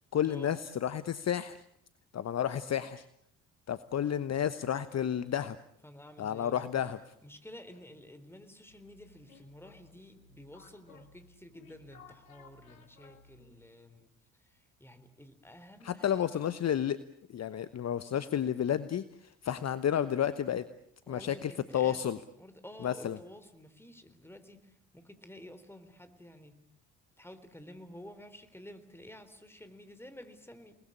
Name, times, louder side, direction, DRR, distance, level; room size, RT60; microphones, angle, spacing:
voice 1, 0.1-1.6 2.1-3.0 3.7-5.6 6.2-7.0 15.8-17.0 17.3-20.6 21.1-22.2 22.8-23.2, left 9 dB, 40° left, 14 dB, 1.1 m, -31 dB
voice 2, 5.8-6.7 7.2-14.1 14.4-16.4 21.1-22.0 22.4-26.5 27.2-30.8, left 1 dB, 5° left, 9 dB, 3.8 m, -51 dB
sound 1, 8.7-13.8, left 4 dB, 90° left, 2.1 m, -58 dB
29.0 x 20.0 x 8.7 m, 0.73 s
hypercardioid pair, 55°, 42 cm